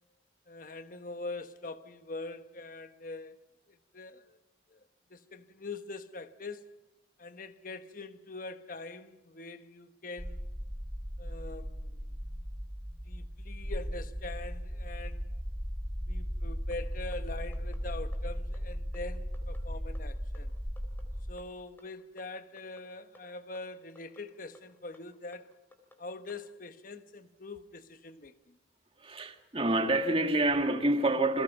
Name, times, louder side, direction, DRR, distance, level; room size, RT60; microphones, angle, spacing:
voice 1, 0.5-3.4 3.7-4.4 4.7-4.8 5.1-6.7 7.2-10.5 11.2-12.2 13.1-15.3 16.1-20.5 21.3-25.5 26.0-28.6, left 3 dB, 50° left, 1.1 m, -43 dB
sound 1, 10.2-21.3, equal, 5° right, 1.2 m, -37 dB
sound 2, 16.7-26.5, left 1 dB, 10° left, 3.6 m, -59 dB
voice 2, 29.0-31.4, right 2 dB, 30° right, 1.9 m, -27 dB
29.0 x 22.5 x 5.9 m
head